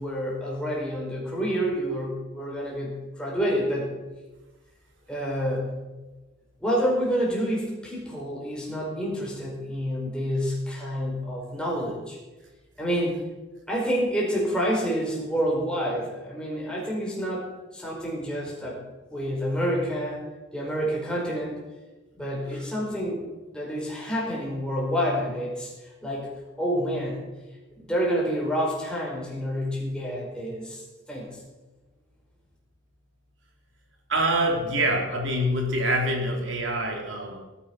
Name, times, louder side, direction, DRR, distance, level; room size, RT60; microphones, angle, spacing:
voice 1, 0.0-3.9 5.1-5.7 6.6-12.2 12.8-13.2 13.7-17.5 17.7-18.8 19.1-20.2 20.5-21.6 22.2-23.2 23.5-27.2 27.7-31.4, equal, 5° left, -4 dB, 5.2 m, -28 dB
voice 2, 34.1-37.4, right 1 dB, 70° right, 1 dB, 3.6 m, -25 dB
19.5 x 9.8 x 6.1 m, 1.2 s
head